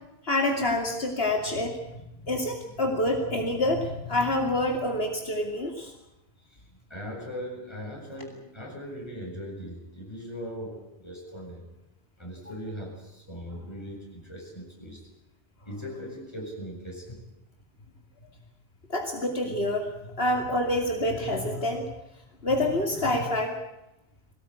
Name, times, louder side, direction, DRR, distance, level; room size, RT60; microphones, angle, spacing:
voice 1, 0.2-1.7 2.3-5.9 18.9-19.9 20.2-21.9 22.4-23.5, left 1 dB, 75° left, 2 dB, 2.7 m, -27 dB
voice 2, 6.7-11.6 12.2-15.0 15.7-17.2 21.7-21.8, equal, 25° left, -1 dB, 7.5 m, -39 dB
23.0 x 18.0 x 8.8 m, 0.90 s
omnidirectional pair, 1.0 m